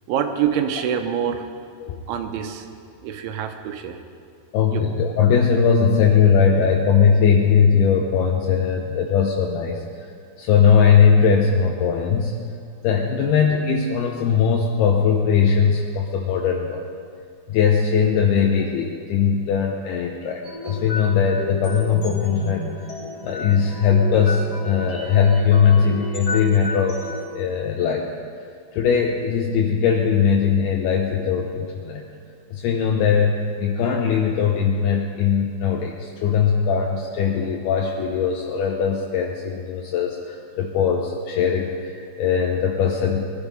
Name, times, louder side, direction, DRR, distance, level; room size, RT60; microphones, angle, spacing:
voice 1, 0.1-1.5 1.8-2.7 3.0-4.0 4.7-4.8, right 8 dB, 85° right, 6 dB, 3.3 m, -26 dB
voice 2, 4.5-10.1 10.4-12.4 12.8-16.8 17.5-22.7 23.2-27.0 27.3-28.1 28.7-32.1 32.5-43.3, left 6 dB, 75° left, 0 dB, 2.5 m, -20 dB
sound 1, 20.4-27.2, left 2 dB, 25° left, 3.1 m, -33 dB
21.0 x 13.0 x 5.3 m, 2.2 s
omnidirectional pair, 5.4 m